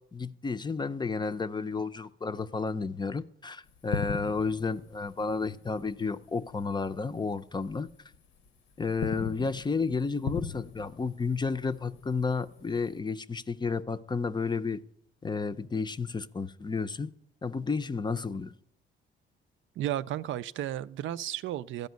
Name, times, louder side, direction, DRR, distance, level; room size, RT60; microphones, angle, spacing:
voice 1, 0.1-7.9 8.8-14.8 15.2-17.1 17.4-18.5, left 4 dB, 20° left, 0.5 m, -32 dB
sound 1, 3.7-6.7 6.9-7.2 7.7-8.5 8.8-13.0, left 6 dB, 75° left, 0.8 m, -39 dB
voice 2, 19.8-21.9, right 12 dB, 75° right, 0.5 m, -33 dB
13.5 x 5.3 x 9.3 m
cardioid pair, 90°, 20 cm